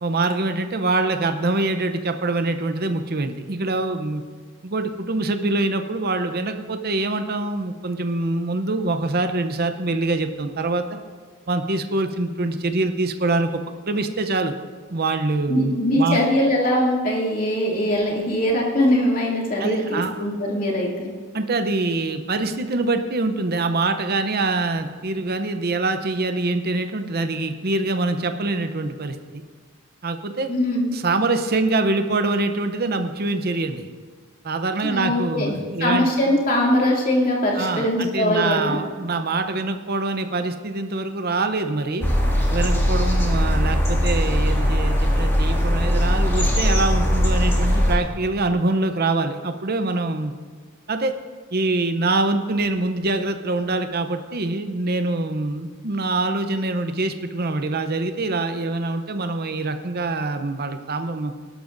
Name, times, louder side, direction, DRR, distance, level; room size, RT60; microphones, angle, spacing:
voice 1, 0.0-4.2 4.6-10.8 11.5-13.5 13.8-14.5 14.9-16.2 19.6-20.1 21.3-29.4 30.0-30.5 30.9-33.9 34.4-36.1 37.6-42.1 42.5-50.3 50.9-51.1 51.5-61.3, right 2 dB, 45° right, 7 dB, 0.7 m, -24 dB
voice 2, 15.5-21.1 30.5-30.9 34.8-35.5 35.8-38.8, left 1 dB, 40° left, -3 dB, 2.6 m, -21 dB
sound 1, 42.0-48.0, equal, 10° left, 2.1 m, -20 dB
19.0 x 12.5 x 2.6 m, 1.5 s
head